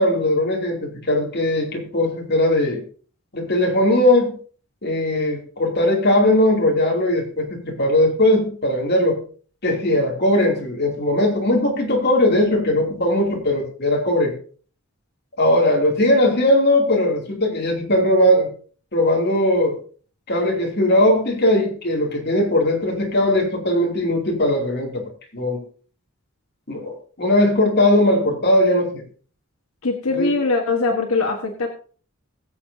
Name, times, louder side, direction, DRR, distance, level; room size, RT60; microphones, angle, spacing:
voice 1, 0.0-2.8 3.3-4.3 4.8-9.2 9.6-14.4 15.4-18.5 18.9-19.8 20.3-25.0 25.3-25.6 26.7-29.0 30.1-30.3, left 1 dB, 50° left, -1 dB, 2.9 m, -19 dB
voice 2, 29.8-31.7, left 3 dB, 80° left, 3 dB, 1.4 m, -21 dB
21.0 x 7.4 x 2.8 m, 0.42 s
head